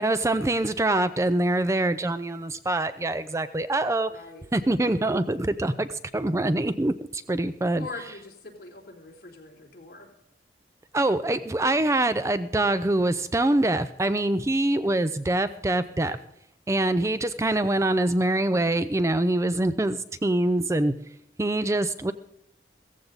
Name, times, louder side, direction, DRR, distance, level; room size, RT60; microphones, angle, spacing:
voice 1, 0.0-4.1 4.5-7.9 10.9-16.2 16.7-20.9 21.4-22.1, right 2 dB, 15° right, 12 dB, 0.4 m, -24 dB
voice 2, 4.1-4.5 7.8-10.1, left 3 dB, 55° left, -1 dB, 3.5 m, -42 dB
16.0 x 15.0 x 4.0 m, 0.80 s
head